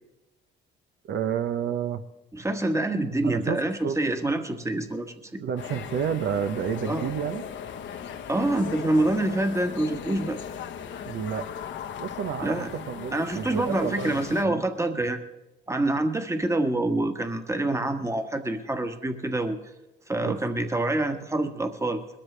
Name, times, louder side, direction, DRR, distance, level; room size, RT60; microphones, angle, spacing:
voice 1, 1.1-2.0 3.2-4.0 5.4-7.4 11.0-11.5 12.0-14.6 20.2-20.4, right 8 dB, 70° right, 8 dB, 0.8 m, -30 dB
voice 2, 2.3-5.4 6.9-7.1 8.3-10.4 12.4-12.7 13.1-15.2 15.7-19.6 20.1-22.0, right 2 dB, 15° right, 7 dB, 1.4 m, -26 dB
sound 1, 5.6-14.5, left 8 dB, 70° left, 1.1 m, -38 dB
21.5 x 13.0 x 3.3 m, 1.0 s
cardioid pair, 90°, 20 cm